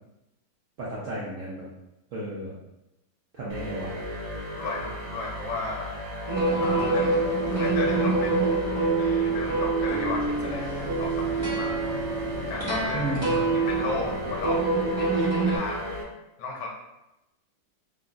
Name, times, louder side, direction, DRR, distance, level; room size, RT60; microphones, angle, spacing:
voice 1, 0.8-1.7 2.1-2.5 3.3-4.0 12.9-13.4, right 1 dB, 65° right, -6 dB, 0.7 m, -33 dB
sound 1, 3.5-16.0, equal, 85° right, 1.5 m, -36 dB
voice 2, 4.6-5.9 6.6-11.9 12.3-13.1 13.7-14.6 15.0-15.9 16.4-16.7, left 3 dB, 70° left, -1 dB, 1.2 m, -35 dB
sound 2, 6.3-15.6, right 3 dB, 40° right, 0.4 m, -26 dB
3.6 x 2.3 x 3.8 m, 0.93 s
omnidirectional pair, 2.1 m